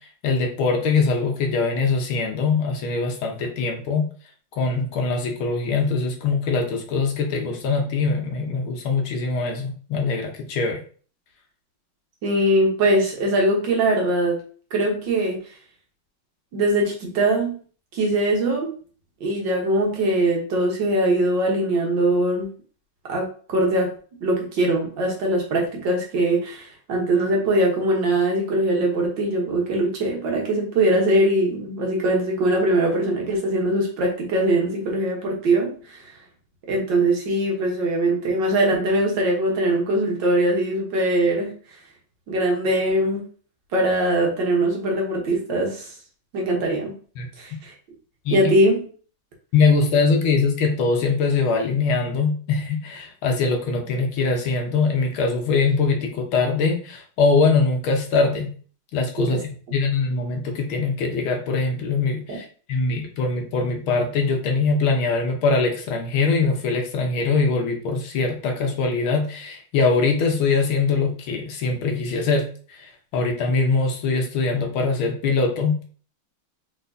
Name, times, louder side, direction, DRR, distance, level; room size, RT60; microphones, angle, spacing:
voice 1, 0.2-4.1 4.6-10.8 47.2-47.3 48.3-48.5 49.5-58.5 58.9-75.9, left 4 dB, 75° left, 3 dB, 1.7 m, -22 dB
voice 2, 12.2-14.4 14.7-15.4 16.5-17.5 17.9-18.7 19.2-22.5 23.0-23.9 24.2-36.0 36.7-41.5 42.3-43.2 43.7-45.9 46.3-46.9 47.4-47.7 48.3-48.8 59.2-59.4 62.3-62.4, right 1 dB, 60° right, 0 dB, 1.7 m, -21 dB
4.3 x 4.3 x 2.6 m, 0.42 s
omnidirectional pair, 2.4 m